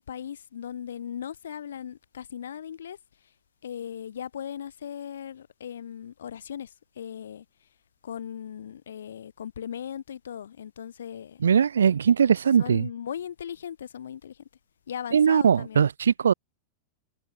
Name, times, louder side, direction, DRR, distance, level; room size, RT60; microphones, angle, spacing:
voice 1, 0.0-3.0 3.6-7.7 8.0-11.4 12.6-14.5 14.9-15.8, left 9 dB, 65° left, 2.4 m, -38 dB
voice 2, 11.4-12.9 15.1-16.3, right 7 dB, 70° right, 0.6 m, -20 dB
figure-of-eight pair, 90°, 0 cm